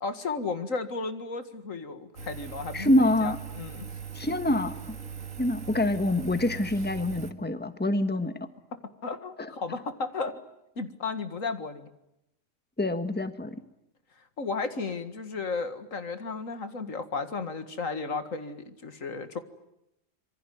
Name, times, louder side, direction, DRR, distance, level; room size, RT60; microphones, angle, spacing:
voice 1, 0.0-3.9 9.0-10.4 10.8-11.9 14.4-19.4, left 4 dB, 80° left, 9 dB, 2.3 m, -34 dB
Engine, 2.2-7.3, right 7 dB, 80° right, 2.1 m, -40 dB
voice 2, 2.7-3.4 4.1-4.8 5.4-8.3 9.4-9.5 12.8-13.6, left 1 dB, 10° left, 9 dB, 1.4 m, -26 dB
26.5 x 23.5 x 9.3 m, 0.85 s
omnidirectional pair, 1.3 m